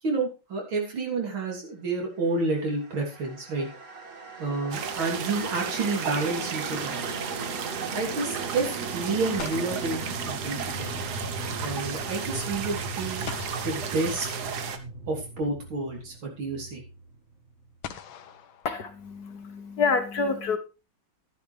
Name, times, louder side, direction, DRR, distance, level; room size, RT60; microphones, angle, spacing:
voice 1, 0.0-3.7 4.4-7.1 7.9-11.0 11.6-13.3 13.6-14.3 15.1-16.8, right 3 dB, 75° right, 0 dB, 4.1 m, -30 dB
sound 1, 2.5-17.8, right 2 dB, 40° right, 1.5 m, -39 dB
sound 2, 3.9-4.8 8.8-8.9 9.4-11.1 13.3-14.8 16.2-16.3 17.8-19.5, left 8 dB, 80° left, 1.8 m, -44 dB
sound 3, 4.7-14.8, right 6 dB, 55° right, 1.5 m, -34 dB
voice 2, 18.6-20.6, left 4 dB, 55° left, 9 dB, 1.3 m, -27 dB
12.0 x 10.5 x 3.3 m, 0.29 s
omnidirectional pair, 2.2 m